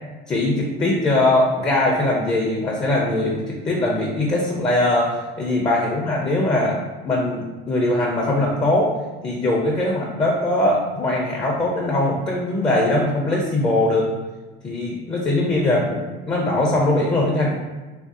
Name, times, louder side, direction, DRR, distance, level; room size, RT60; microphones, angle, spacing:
voice 1, 0.3-6.8 7.0-8.9 9.2-14.1 14.6-16.0 16.3-17.5, left 1 dB, 20° left, -2 dB, 0.4 m, -21 dB
2.6 x 2.5 x 2.4 m, 1.2 s
supercardioid pair, 100°, 21 cm